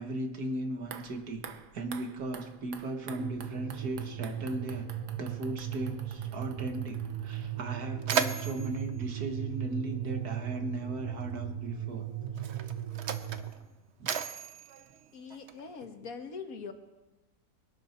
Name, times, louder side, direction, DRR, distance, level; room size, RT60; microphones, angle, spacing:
voice 1, 0.0-1.4 1.7-4.9 5.2-12.1 13.3-13.4 14.0-14.1, right 1 dB, 70° right, 5 dB, 2.0 m, -37 dB
sound 1, 0.8-7.9 8.1-8.2, right 7 dB, 90° right, 1.6 m, -50 dB
sound 2, 3.1-13.5, right 10 dB, 35° right, 0.6 m, -37 dB
Mechanisms, 7.1-7.2 7.6-10.3 11.3-11.5 12.3-15.9, right 7 dB, 50° right, 1.0 m, -36 dB
voice 2, 15.1-16.7, left 5 dB, 60° left, 6 dB, 1.8 m, -42 dB
23.5 x 11.5 x 4.4 m, 1.1 s
omnidirectional pair, 1.7 m